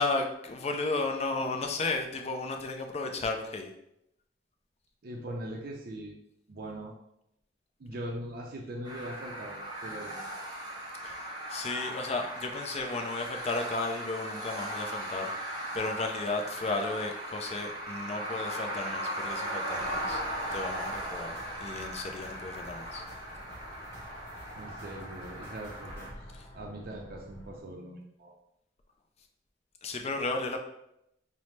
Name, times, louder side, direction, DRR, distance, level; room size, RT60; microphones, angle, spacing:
voice 1, 0.0-3.7 11.0-20.2 20.5-23.0 26.3-26.5 29.8-30.6, left 3 dB, 35° left, 4 dB, 0.4 m, -34 dB
voice 2, 5.0-6.2 6.5-7.0 7.8-10.3 24.5-26.1 26.5-28.4, right 1 dB, 55° right, 0 dB, 0.5 m, -41 dB
sound 1, 8.8-26.1, right 1 dB, 25° right, 0.8 m, -38 dB
sound 2, 19.7-27.6, left 1 dB, 15° left, 1.1 m, -48 dB
5.5 x 2.0 x 3.1 m, 0.80 s
head